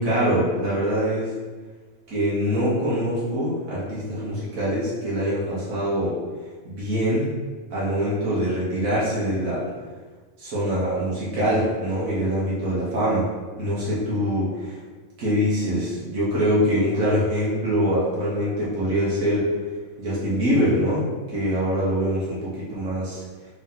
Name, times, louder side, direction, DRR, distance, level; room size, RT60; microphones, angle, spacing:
voice 1, 0.0-1.3 2.1-6.2 6.6-7.3 7.7-9.6 10.4-13.3 13.6-14.8 15.2-19.5 20.0-22.4 22.7-23.2, equal, 85° right, -9 dB, 1.5 m, -24 dB
3.8 x 2.8 x 3.7 m, 1.4 s
omnidirectional pair, 1.4 m